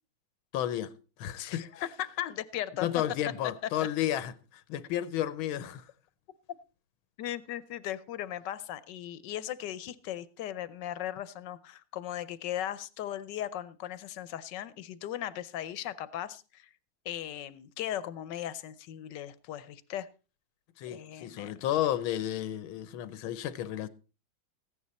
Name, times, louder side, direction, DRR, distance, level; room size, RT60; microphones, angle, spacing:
voice 1, 0.5-0.9 1.2-1.7 2.8-5.9 20.8-23.9, left 12 dB, 90° left, 1.6 m, -32 dB
voice 2, 1.4-2.9 7.2-16.7 17.0-20.1 20.9-21.6, left 11 dB, 70° left, 1.3 m, -38 dB
15.0 x 9.7 x 4.1 m
omnidirectional pair, 2.2 m